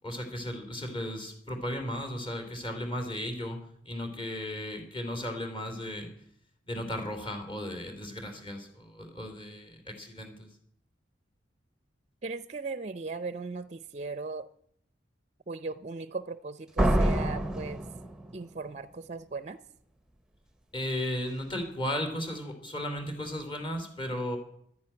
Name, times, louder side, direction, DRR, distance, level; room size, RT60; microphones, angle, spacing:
voice 1, 0.0-6.1 6.7-10.5 20.7-24.4, left 1 dB, 30° left, 2.9 m, -35 dB
voice 2, 12.2-14.5 15.5-17.8 18.3-19.6, right 3 dB, 35° right, 0.5 m, -38 dB
Slam, 16.8-18.7, right 1 dB, 5° right, 0.8 m, -27 dB
12.0 x 10.5 x 9.8 m
head